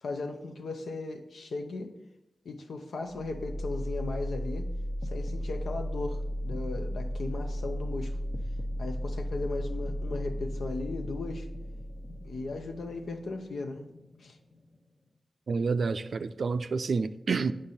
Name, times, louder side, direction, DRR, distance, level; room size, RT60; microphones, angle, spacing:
voice 1, 0.0-1.9 2.4-4.7 5.1-8.2 8.8-11.5 12.2-13.9 14.2-14.4, left 3 dB, 85° left, 0.8 m, -37 dB
sound 1, 3.1-15.0, equal, 45° left, 1.0 m, -35 dB
voice 2, 15.5-17.5, right 4 dB, 75° right, 0.4 m, -29 dB
8.6 x 5.2 x 4.2 m
cardioid pair, 45°, 0 cm